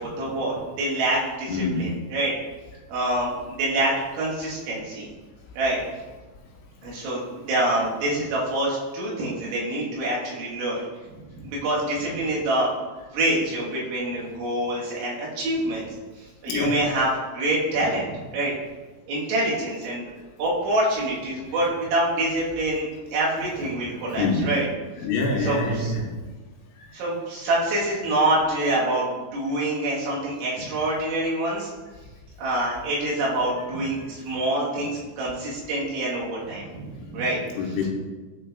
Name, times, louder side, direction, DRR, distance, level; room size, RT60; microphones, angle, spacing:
voice 1, 0.0-2.3 2.9-5.1 5.6-5.8 6.8-10.8 11.4-12.7 13.1-15.9 16.4-18.5 19.1-20.1 20.4-24.7 25.4-25.9 26.9-31.7 32.4-36.7 37.1-37.4, right 1 dB, 75° right, -6 dB, 3.6 m, -26 dB
voice 2, 1.5-1.9 16.5-16.7 21.6-21.7 24.2-24.5 25.0-26.1 37.5-37.9, left 3 dB, 80° left, -1 dB, 3.0 m, -25 dB
11.0 x 4.0 x 2.3 m, 1.3 s
omnidirectional pair, 5.6 m